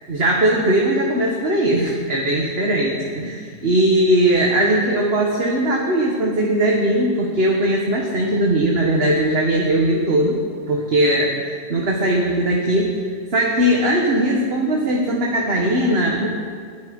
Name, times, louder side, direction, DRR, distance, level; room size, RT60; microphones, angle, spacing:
voice 1, 0.1-10.4 10.7-13.0 13.3-16.3, right 1 dB, 60° right, -2 dB, 1.9 m, -19 dB
22.5 x 10.5 x 5.4 m, 2.1 s
omnidirectional pair, 1.1 m